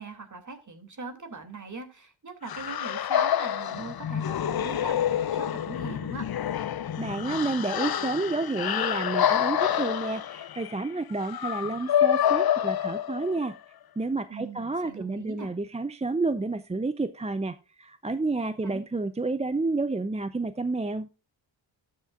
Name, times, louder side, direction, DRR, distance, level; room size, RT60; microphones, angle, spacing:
voice 1, 0.0-6.2 14.3-15.5 18.6-18.8, right 3 dB, 35° right, 7 dB, 2.8 m, -41 dB
sound 1, 2.5-13.5, left 10 dB, 50° left, 0.7 m, -27 dB
voice 2, 7.0-13.5 14.0-21.1, right 3 dB, 15° right, 12 dB, 0.6 m, -30 dB
12.5 x 7.6 x 2.5 m, 0.30 s
cardioid pair, 60°, 49 cm